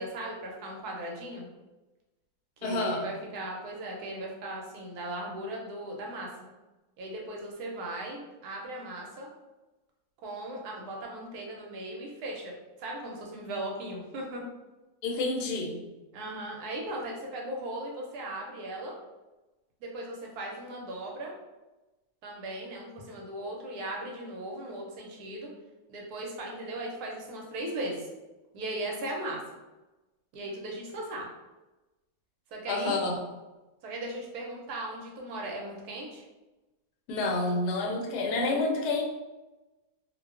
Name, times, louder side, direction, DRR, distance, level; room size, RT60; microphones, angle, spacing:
voice 1, 0.0-1.5 2.6-6.3 7.0-9.3 10.2-12.5 12.8-14.4 16.1-18.9 19.8-21.3 22.2-25.5 25.9-28.1 28.5-29.4 30.3-31.3 32.5-33.0 33.8-36.2, right 1 dB, 80° right, -1 dB, 1.1 m, -37 dB
voice 2, 2.6-3.1 15.0-15.8 32.7-33.1 37.1-39.0, left 2 dB, 85° left, 1 dB, 1.1 m, -29 dB
2.6 x 2.2 x 2.3 m, 1.1 s
omnidirectional pair, 1.7 m